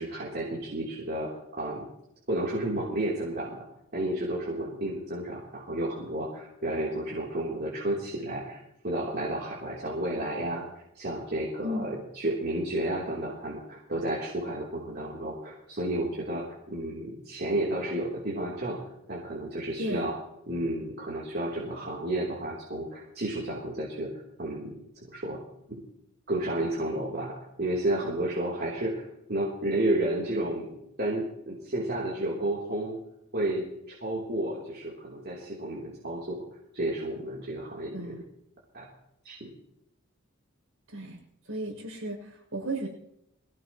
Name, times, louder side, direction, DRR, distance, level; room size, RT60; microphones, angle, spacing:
voice 1, 0.0-1.9 2.3-3.6 3.9-10.6 10.9-18.8 19.1-20.1 20.5-24.1 24.4-24.8 25.1-25.4 25.7-25.8 26.3-30.7 31.0-33.0 33.3-36.4 36.7-38.2 38.7-38.8 39.2-39.5, right 1 dB, 50° right, -6 dB, 3.5 m, -31 dB
voice 2, 11.6-11.9 19.8-20.1 37.9-38.2 40.9-41.2 41.5-42.9, right 1 dB, 70° right, 0 dB, 7.1 m, -34 dB
22.5 x 17.0 x 3.1 m, 0.83 s
head